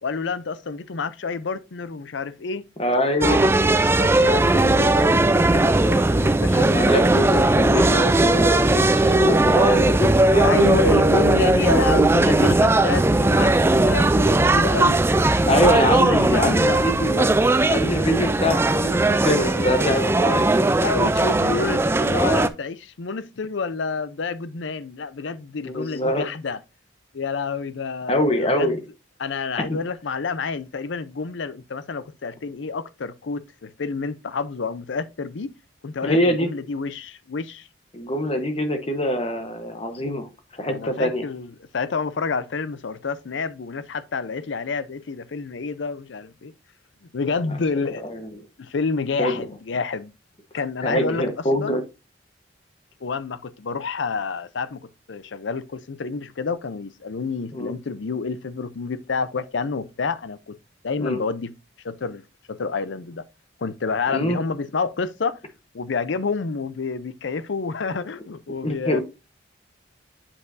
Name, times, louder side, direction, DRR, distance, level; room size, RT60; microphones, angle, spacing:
voice 1, 0.0-2.7 4.0-7.3 10.4-15.0 15.4-16.8 19.4-20.0 20.8-26.6 27.1-28.8 29.2-35.5 35.8-37.7 40.7-46.5 47.1-48.0 48.6-50.1 50.5-51.3 51.6-51.8 53.0-60.6 60.8-61.5 61.8-63.2 63.6-65.4 65.7-69.0, left 4 dB, 75° left, 0.5 m, -29 dB
voice 2, 2.8-3.5 6.6-10.5 12.3-12.6 15.5-20.5 25.6-26.3 28.1-28.8 29.6-29.8 36.0-36.5 37.9-41.3 47.5-47.6 48.0-48.2 49.2-49.5 50.8-51.8 57.5-57.7 61.0-61.2 64.1-64.4 68.6-69.0, left 1 dB, 30° left, 1.1 m, -24 dB
sound 1, 3.2-22.5, right 2 dB, 15° right, 0.3 m, -18 dB
8.4 x 5.4 x 2.6 m
head